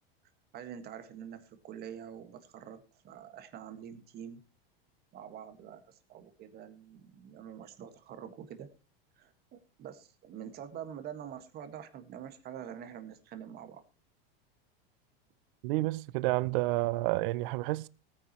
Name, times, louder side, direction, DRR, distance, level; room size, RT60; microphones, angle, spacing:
voice 1, 0.5-4.4 5.1-8.7 9.2-13.8, right 9 dB, 35° right, 1.7 m, -46 dB
voice 2, 15.6-17.9, right 19 dB, 60° right, 0.6 m, -30 dB
18.0 x 9.7 x 3.0 m
supercardioid pair, 150°, 30 cm